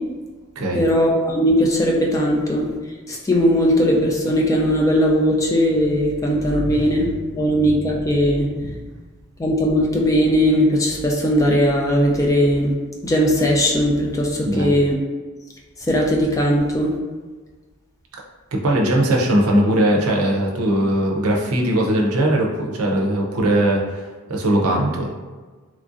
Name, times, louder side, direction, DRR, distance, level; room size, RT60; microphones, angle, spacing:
voice 1, 0.7-2.7 3.1-8.7 9.4-12.7 13.0-14.9 15.9-16.9, equal, 15° left, -1 dB, 0.3 m, -18 dB
voice 2, 14.4-14.8 18.5-24.0 24.3-25.1, right 1 dB, 70° right, -1 dB, 0.5 m, -19 dB
3.1 x 2.5 x 2.4 m, 1.4 s
head